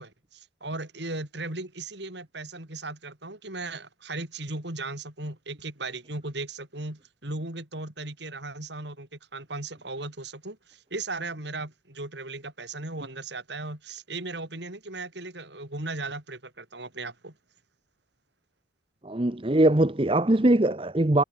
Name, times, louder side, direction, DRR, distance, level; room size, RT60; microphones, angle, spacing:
voice 1, 0.0-17.3, right 2 dB, 65° right, 3.9 m, -37 dB
voice 2, 19.0-21.2, right 1 dB, 30° right, 0.9 m, -21 dB
head